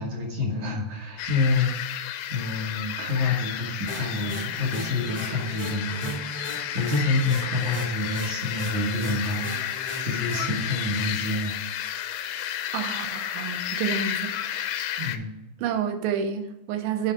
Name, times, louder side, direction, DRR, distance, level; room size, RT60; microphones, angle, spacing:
voice 1, 0.0-2.0 2.3-11.5 15.0-15.4, left 3 dB, 60° right, -1 dB, 2.0 m, -28 dB
sound 1, 1.2-15.2, left 11 dB, 85° left, 2.2 m, -32 dB
sound 2, 3.9-10.7, equal, 20° right, 0.9 m, -38 dB
voice 2, 12.7-14.7 15.6-17.1, right 7 dB, 90° right, 7 dB, 3.0 m, -29 dB
9.8 x 5.0 x 4.5 m, 0.94 s
omnidirectional pair, 4.9 m